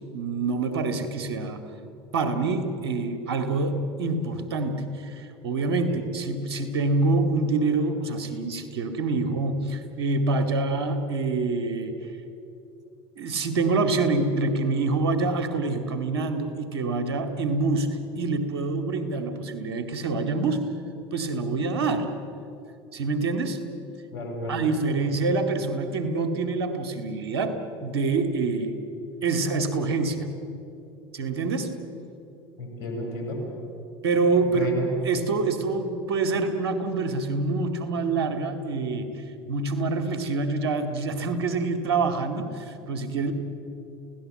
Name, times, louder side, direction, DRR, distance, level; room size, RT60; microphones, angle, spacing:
voice 1, 0.1-1.6 2.1-11.9 13.2-17.9 18.2-20.6 21.1-22.1 22.9-23.6 24.5-28.8 29.2-30.3 31.1-31.8 34.0-34.7 35.0-39.1 39.5-43.3, right 3 dB, 80° right, 8 dB, 2.3 m, -26 dB
voice 2, 24.1-24.6 32.6-33.4 34.5-34.9, left 2 dB, 70° left, 1 dB, 7.4 m, -32 dB
29.5 x 17.5 x 7.8 m, 2.9 s
hypercardioid pair, 80°, 14 cm